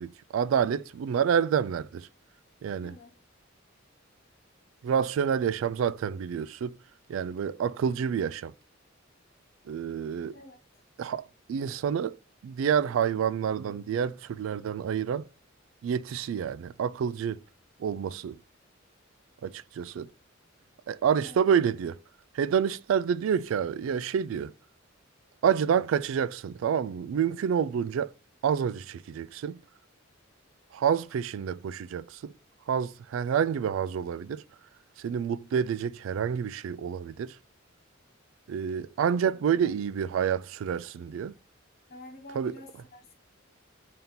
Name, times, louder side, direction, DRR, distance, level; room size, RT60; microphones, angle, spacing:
voice 1, 0.0-2.1 2.6-2.9 4.8-6.8 7.1-8.5 9.7-10.4 11.0-11.2 11.5-12.2 12.4-15.3 15.8-17.4 17.8-18.4 19.4-20.1 20.9-22.0 22.3-24.5 25.4-28.1 28.4-29.6 30.7-32.3 32.7-34.4 35.0-37.4 38.5-41.3 42.4-42.6, right 7 dB, 75° right, 0.3 m, -28 dB
voice 2, 2.8-3.2 10.3-10.8 21.2-21.4 39.3-39.8 41.0-41.1 41.9-43.2, left 1 dB, 50° left, 1.0 m, -49 dB
3.5 x 2.8 x 3.9 m
head